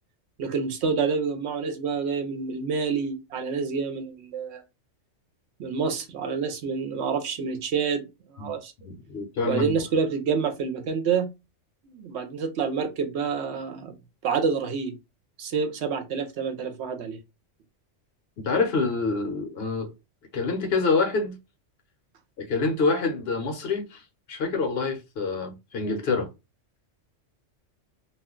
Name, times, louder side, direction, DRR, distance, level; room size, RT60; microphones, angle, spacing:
voice 1, 0.4-4.6 5.6-8.7 9.4-11.3 11.8-14.0 14.2-14.9 15.4-17.2, right 5 dB, 70° right, 0.8 m, -28 dB
voice 2, 8.8-9.7 18.4-19.9 20.3-21.4 22.4-26.3, left 4 dB, 60° left, 0.8 m, -26 dB
2.3 x 2.2 x 3.5 m
omnidirectional pair, 1.3 m